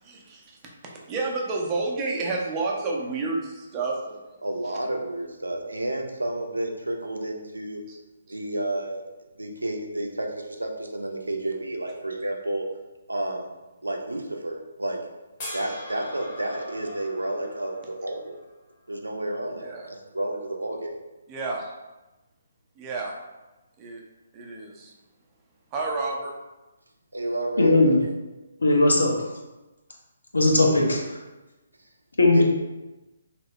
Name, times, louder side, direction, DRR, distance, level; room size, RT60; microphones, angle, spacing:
voice 1, 0.0-4.3 7.9-8.0 19.6-19.9 21.3-21.7 22.8-23.1 23.8-24.0 24.3-24.9 25.7-26.3, right 3 dB, 20° right, -1 dB, 0.5 m, -30 dB
voice 2, 4.4-7.8 8.3-9.0 9.4-12.6 13.1-13.5 13.8-15.0 15.5-18.4 18.9-21.0 27.1-28.0 32.3-32.4, right 1 dB, 80° right, 2 dB, 0.4 m, -31 dB
sound 1, 15.4-18.6 20.7-20.8, left 1 dB, 35° left, 0.9 m, -41 dB
voice 3, 27.6-28.0 28.6-29.3 30.3-31.0 32.2-32.4, left 2 dB, 70° left, -1 dB, 0.6 m, -18 dB
2.8 x 2.0 x 3.0 m, 1.1 s
figure-of-eight pair, 135°, 0 cm